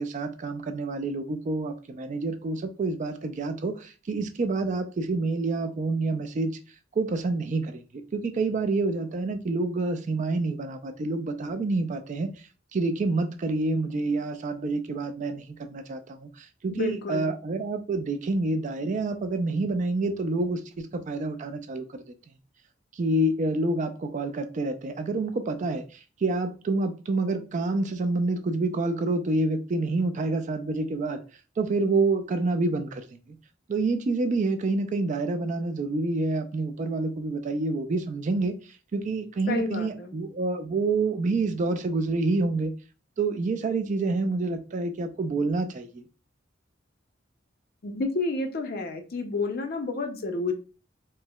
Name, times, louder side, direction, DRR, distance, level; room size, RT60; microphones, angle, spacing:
voice 1, 0.0-6.5 6.9-7.8 8.1-12.3 12.7-22.0 23.0-31.2 31.6-33.0 33.7-38.6 38.9-42.7 43.2-46.0, right 3 dB, 40° right, 0.3 m, -28 dB
voice 2, 16.7-17.4 39.5-40.2 47.8-50.5, left 3 dB, 50° left, 0.5 m, -30 dB
4.4 x 2.1 x 2.2 m
head